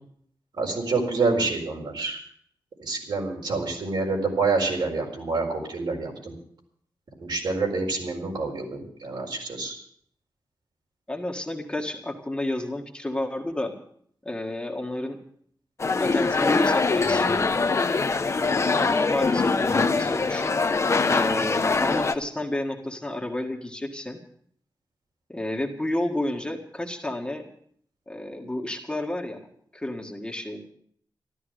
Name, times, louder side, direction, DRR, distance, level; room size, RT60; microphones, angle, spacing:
voice 1, 0.6-2.2 2.8-6.3 7.2-9.7, right 3 dB, 70° right, 1 dB, 4.5 m, -27 dB
voice 2, 11.1-13.7 14.3-15.2 16.0-17.6 18.8-20.6 21.0-24.2 25.3-27.5 28.1-29.4 29.7-30.6, left 1 dB, 10° left, 1 dB, 1.7 m, -31 dB
sound 1, 15.8-22.2, left 4 dB, 35° left, 0.8 m, -23 dB
13.5 x 13.0 x 6.5 m, 0.63 s
wide cardioid pair, 145°, 8 cm